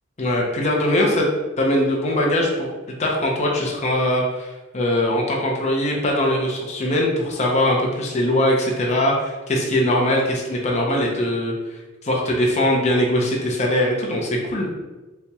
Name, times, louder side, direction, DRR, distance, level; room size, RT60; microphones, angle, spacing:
voice 1, 0.2-1.3 1.6-2.7 3.0-14.7, left 1 dB, 35° left, -1 dB, 0.6 m, -21 dB
4.3 x 2.8 x 2.3 m, 1.2 s
head